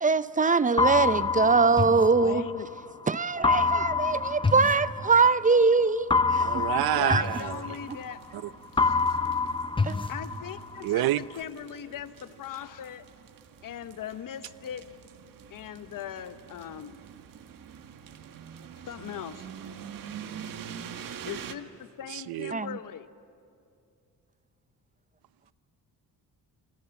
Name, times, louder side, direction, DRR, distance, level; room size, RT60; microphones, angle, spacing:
voice 1, 0.0-2.4 3.1-6.7 7.0-7.2 9.8-10.1 22.5-22.7, right 4 dB, 20° right, 15 dB, 0.6 m, -23 dB
sound 1, 0.8-2.8 3.4-5.5 6.1-8.4 8.8-10.8, left 4 dB, 15° left, 0.7 m, -27 dB
voice 2, 2.2-2.7 6.9-8.2 8.7-9.2 10.1-13.0 13.6-14.9 15.5-17.0 18.9-19.5 21.2-23.1, left 9 dB, 65° left, 11 dB, 1.2 m, -39 dB
sound 2, 6.3-21.5, right 8 dB, 65° right, 1.6 m, -46 dB
voice 3, 6.4-7.5 10.8-11.2 22.3-22.5, right 15 dB, 80° right, 17 dB, 0.6 m, -27 dB
27.0 x 27.0 x 7.1 m, 2.5 s
cardioid pair, 95°, 36 cm